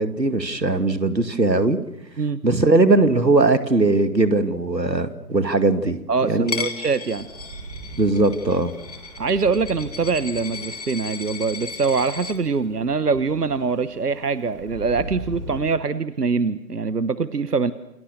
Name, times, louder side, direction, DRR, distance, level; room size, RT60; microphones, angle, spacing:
voice 1, 0.0-1.8 2.4-6.0 6.3-6.7 8.0-8.7, right 2 dB, 90° right, 10 dB, 2.5 m, -19 dB
voice 2, 6.1-7.3 9.2-17.7, right 4 dB, 70° right, 15 dB, 1.2 m, -23 dB
Coin (dropping), 6.5-12.3, left 5 dB, 25° left, 1.8 m, -35 dB
sound 1, 7.1-15.6, right 3 dB, 15° right, 3.7 m, -40 dB
28.5 x 28.0 x 6.7 m, 0.88 s
figure-of-eight pair, 155°, 49 cm